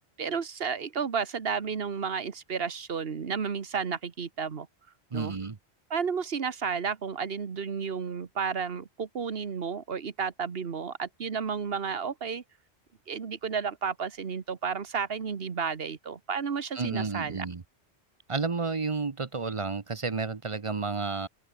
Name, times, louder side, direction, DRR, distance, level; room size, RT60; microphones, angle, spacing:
voice 1, 0.2-4.7 5.1-5.3 5.9-12.4 13.1-17.5, right 6 dB, 65° right, 1.5 m, -32 dB
voice 2, 5.1-5.6 16.7-17.6 18.3-21.3, right 4 dB, 30° right, 0.8 m, -31 dB
open air
omnidirectional pair, 1.1 m